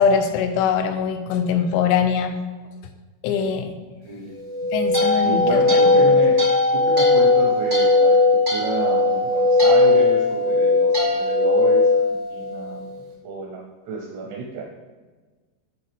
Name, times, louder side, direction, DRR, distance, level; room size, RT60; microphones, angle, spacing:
voice 1, 0.0-2.4 3.2-3.8 4.7-5.8, left 6 dB, 85° left, 8 dB, 3.0 m, -22 dB
sound 1, 4.4-12.8, left 3 dB, 40° right, 0.9 m, -18 dB
voice 2, 5.2-6.4 6.7-8.2 8.5-12.9 13.2-14.6, right 3 dB, 80° right, 0 dB, 2.5 m, -30 dB
12.0 x 4.3 x 3.4 m, 1.3 s
omnidirectional pair, 5.7 m